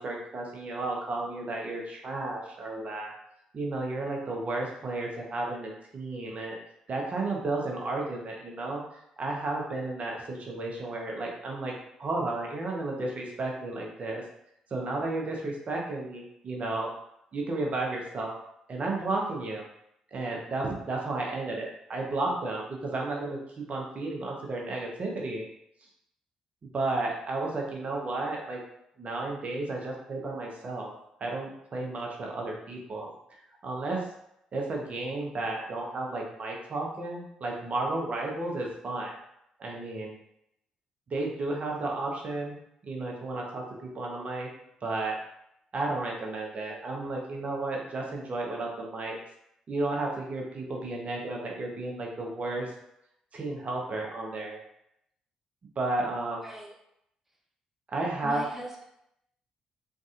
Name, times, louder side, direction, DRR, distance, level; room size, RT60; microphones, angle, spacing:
voice 1, 0.0-3.1 3.5-6.6 6.9-11.7 12.0-14.2 14.7-16.9 17.3-18.3 18.7-19.6 20.1-25.4 26.6-28.6 29.0-30.9 31.2-33.1 33.6-34.1 34.5-39.1 39.6-40.1 41.1-42.5 42.8-44.5 44.8-45.2 45.7-49.2 49.7-52.7 53.3-54.6 55.8-56.4 57.9-58.4, right 2 dB, 45° right, -1 dB, 1.1 m, -33 dB
voice 2, 56.4-56.7 58.2-58.8, right 2 dB, 5° right, 0 dB, 0.7 m, -41 dB
3.9 x 3.7 x 2.5 m, 0.77 s
hypercardioid pair, 40°, 3 cm